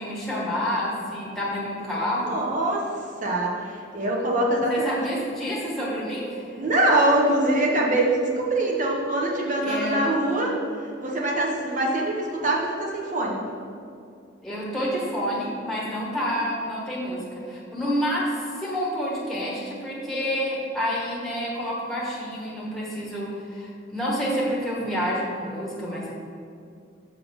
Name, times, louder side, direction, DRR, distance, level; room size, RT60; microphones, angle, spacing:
voice 1, 0.0-2.4 4.7-6.5 9.6-10.0 14.4-26.1, equal, ahead, -5 dB, 1.4 m, -28 dB
voice 2, 2.1-2.8 3.2-5.0 6.6-10.5 11.0-13.4, right 1 dB, 40° right, -2 dB, 1.1 m, -23 dB
6.5 x 4.2 x 6.3 m, 2.4 s
head